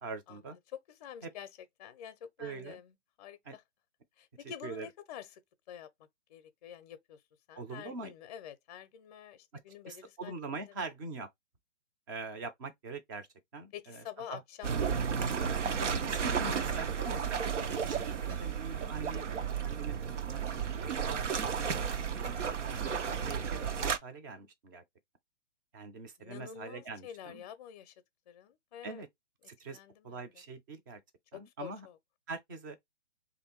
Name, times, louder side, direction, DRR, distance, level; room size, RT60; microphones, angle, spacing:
voice 1, 0.0-0.6 1.2-1.3 2.4-2.8 3.4-3.6 4.6-4.9 7.6-8.1 9.5-9.6 9.9-11.3 12.1-13.3 13.5-14.0 14.3-14.4 15.8-19.3 19.6-20.4 20.8-21.9 22.1-22.4 22.6-24.8 25.7-27.4 28.8-29.1 29.5-29.8 30.0-31.0 31.3-31.9 32.3-32.8, right 3 dB, 20° right, 0.4 m, -43 dB
voice 2, 0.9-1.5 1.8-2.9 3.2-3.6 4.2-5.4 5.7-5.9 6.3-7.2 7.5-10.3 10.6-10.7 13.7-15.7 26.2-27.9 28.3-29.0 29.7-30.3 31.3-32.0, left 9 dB, 35° left, 0.5 m, -48 dB
sound 1, 14.6-24.0, right 6 dB, 90° right, 0.7 m, -33 dB
3.3 x 2.6 x 4.3 m
hypercardioid pair, 135°, 35 cm